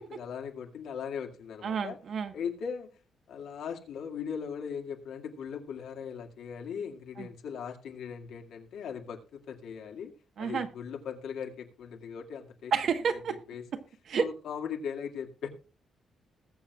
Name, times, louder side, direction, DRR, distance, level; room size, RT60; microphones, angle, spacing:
voice 1, 0.1-2.0 2.3-2.9 3.3-12.7 13.5-13.7 14.1-15.5, left 7 dB, 90° left, 2 dB, 2.1 m, -39 dB
voice 2, 1.6-2.3 7.2-7.3 10.4-10.7 12.7-13.4 14.1-14.3, right 6 dB, 55° right, 8 dB, 1.2 m, -29 dB
21.0 x 7.7 x 2.4 m, 0.34 s
cardioid pair, 140°, 0 cm